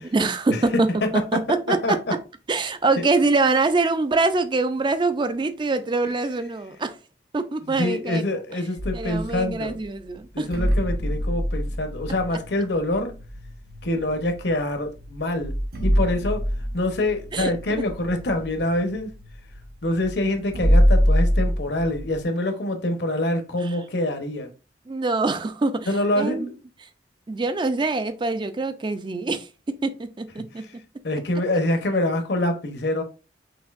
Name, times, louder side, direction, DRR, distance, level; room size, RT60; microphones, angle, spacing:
voice 1, 0.0-2.0 2.5-7.0 7.3-8.2 8.9-10.5 17.3-17.5 24.9-25.9 26.2-26.5 27.3-30.8, right 3 dB, 25° right, 0.4 m, -24 dB
voice 2, 7.6-9.8 10.3-13.1 13.8-15.5 15.8-16.4 16.7-19.1 19.8-24.5 25.9-26.5 30.4-30.7 31.0-33.0, left 1 dB, 70° left, 0.9 m, -25 dB
sound 1, 8.8-9.7 10.5-14.5 14.9-15.1 15.3-22.2, equal, 60° right, 1.0 m, -24 dB
6.0 x 2.9 x 2.4 m
head